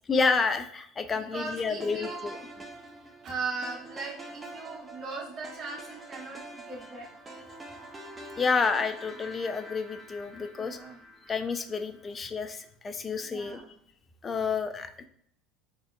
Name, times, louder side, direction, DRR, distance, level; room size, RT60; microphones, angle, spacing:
voice 1, 0.1-2.4 8.4-10.8 11.3-13.6 14.2-15.1, left 5 dB, 30° left, 8 dB, 0.4 m, -29 dB
voice 2, 1.1-2.4 3.2-7.1 10.5-11.0 13.2-13.7, right 4 dB, 50° right, -4 dB, 1.4 m, -38 dB
sound 1, 1.8-12.1, right 1 dB, 20° right, 0.7 m, -46 dB
4.1 x 2.9 x 2.4 m, 0.68 s
hypercardioid pair, 75°, 0 cm